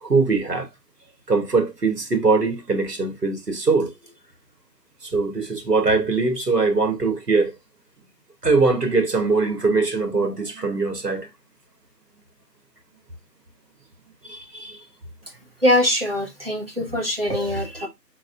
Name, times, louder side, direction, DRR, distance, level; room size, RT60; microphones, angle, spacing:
voice 1, 0.0-0.7 1.3-3.9 5.0-7.5 8.4-11.3 14.2-14.8, right 3 dB, 65° right, 1.5 m, -21 dB
voice 2, 15.6-17.9, left 1 dB, 35° right, 1.3 m, -22 dB
4.4 x 3.9 x 2.5 m
figure-of-eight pair, 175°, 50 cm